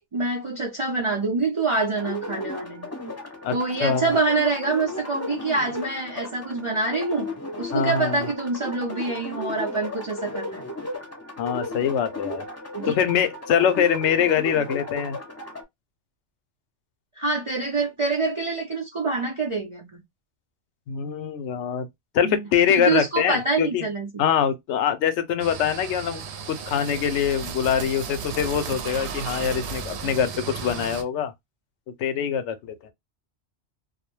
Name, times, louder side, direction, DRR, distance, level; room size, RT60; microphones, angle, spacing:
voice 1, 0.1-2.9 3.5-7.3 7.6-10.6 12.8-13.0 17.2-20.0 22.2-22.4 22.7-24.1, right 3 dB, 45° right, 0.4 m, -26 dB
sound 1, 2.0-15.6, left 2 dB, 15° left, 0.6 m, -35 dB
voice 2, 3.8-4.1 7.7-8.2 11.4-12.5 12.9-15.2 20.9-21.9 22.1-23.9 24.2-30.3 30.6-31.3 32.0-32.9, left 8 dB, 80° left, 0.9 m, -24 dB
sound 2, 25.4-31.0, right 5 dB, 75° right, 0.8 m, -34 dB
2.3 x 2.1 x 3.0 m
omnidirectional pair, 1.2 m